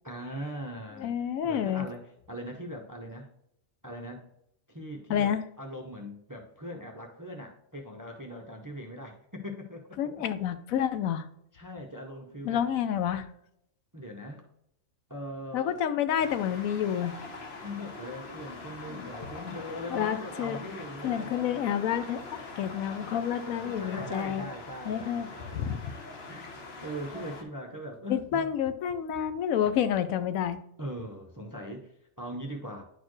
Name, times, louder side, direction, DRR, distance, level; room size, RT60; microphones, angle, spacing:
voice 1, 0.0-1.1 1.4-3.3 3.8-4.3 4.7-10.2 11.5-12.7 13.9-14.5 15.1-15.7 17.6-21.4 23.6-25.7 26.3-28.5 30.8-32.8, equal, 25° right, 3 dB, 0.4 m, -40 dB
voice 2, 1.0-1.9 5.1-5.4 10.0-11.3 12.4-13.2 15.5-17.1 18.9-19.1 19.9-20.6 21.0-22.2 22.6-24.4 24.9-26.0 28.1-30.6, left 9 dB, 80° left, 11 dB, 1.0 m, -29 dB
sound 1, 16.2-27.4, left 3 dB, 50° left, 1.2 m, -43 dB
10.0 x 4.3 x 3.1 m, 0.76 s
omnidirectional pair, 1.4 m